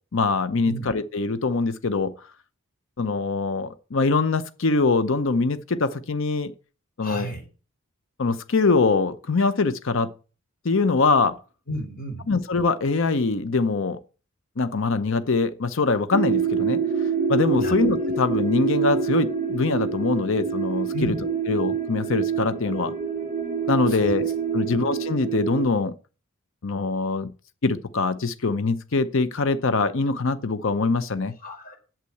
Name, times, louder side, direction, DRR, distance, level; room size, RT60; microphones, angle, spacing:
voice 1, 0.1-2.2 3.0-6.5 7.0-7.3 8.2-10.1 10.6-11.4 12.3-14.0 14.6-16.8 17.3-21.2 21.5-22.9 23.7-24.3 24.5-25.9 26.6-27.3 27.6-31.3, left 3 dB, 60° left, 0.7 m, -23 dB
voice 2, 7.0-7.4 11.7-12.3 17.6-17.8 20.9-21.2 23.9-24.1 31.4-31.7, right 1 dB, 40° left, 4.7 m, -33 dB
sound 1, 16.1-25.7, right 6 dB, 40° right, 1.3 m, -26 dB
8.5 x 7.4 x 7.7 m
head